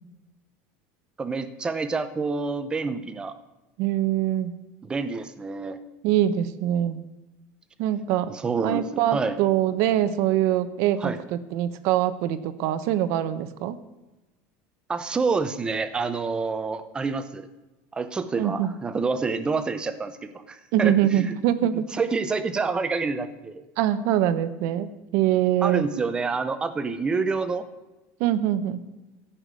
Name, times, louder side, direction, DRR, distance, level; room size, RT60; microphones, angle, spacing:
voice 1, 1.2-3.3 4.8-5.8 8.3-9.4 11.0-11.2 14.9-17.5 17.9-21.3 21.7-23.6 25.6-27.6, right 4 dB, 15° right, 11 dB, 0.8 m, -28 dB
voice 2, 3.8-4.5 6.0-7.0 7.8-8.3 8.6-13.8 18.4-18.7 20.7-21.9 23.8-25.8 28.2-28.8, right 11 dB, 60° right, 13 dB, 0.9 m, -24 dB
15.5 x 5.9 x 8.2 m, 1.1 s
cardioid pair, 160°, 6 cm